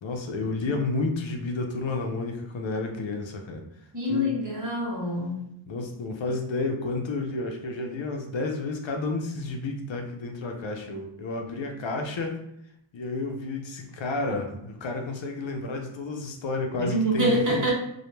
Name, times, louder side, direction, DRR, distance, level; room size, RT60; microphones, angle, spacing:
voice 1, 0.0-3.6 4.1-4.3 5.7-12.4 12.9-17.7, left 3 dB, 65° left, 3 dB, 0.6 m, -31 dB
voice 2, 3.9-5.4 16.9-17.7, equal, 40° right, -3 dB, 1.0 m, -25 dB
2.2 x 2.1 x 3.0 m, 0.77 s
wide cardioid pair, 50°, 49 cm